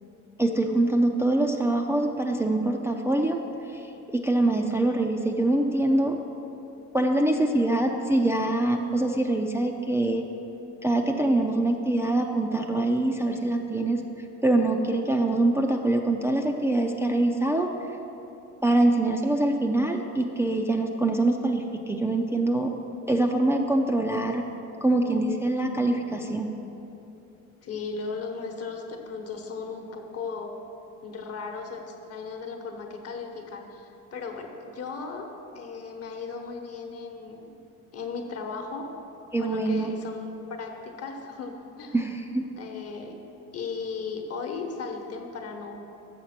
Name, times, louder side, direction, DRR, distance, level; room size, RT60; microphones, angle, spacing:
voice 1, 0.4-3.4 3.7-6.1 6.9-10.3 10.8-14.0 14.4-17.7 18.6-22.7 23.1-24.5 24.8-26.5 39.3-39.9 41.9-42.5, right 2 dB, 10° right, 1 dB, 0.4 m, -24 dB
voice 2, 27.6-30.5 31.0-35.3 35.5-37.5 37.9-38.9 39.4-42.0 42.6-43.2 43.5-45.8, left 4 dB, 50° left, 3 dB, 1.1 m, -36 dB
6.7 x 6.4 x 5.8 m, 2.9 s
cardioid pair, 90°, 32 cm